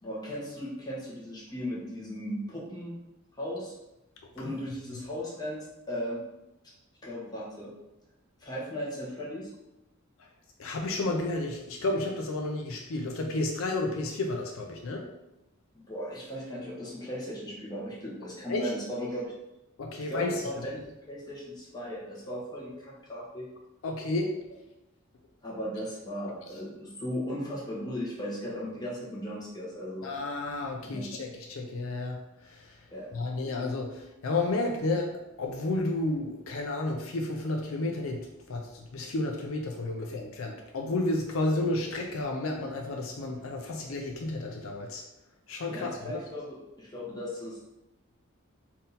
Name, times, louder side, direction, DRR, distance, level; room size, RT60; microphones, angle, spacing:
voice 1, 0.0-3.0 3.3-3.7 4.3-6.2 6.6-6.7 7.0-7.7 8.4-9.5 15.9-19.3 20.0-23.5 25.4-30.1 30.8-31.2 32.9-33.1 45.7-47.6, equal, 20° left, -6 dB, 1.2 m, -37 dB
voice 2, 10.6-15.1 18.5-18.7 19.8-20.4 23.8-24.3 30.0-32.2 32.5-32.7 33.1-45.0 45.5-46.2, left 2 dB, 75° left, 2 dB, 0.5 m, -31 dB
3.7 x 2.7 x 4.0 m, 0.92 s
head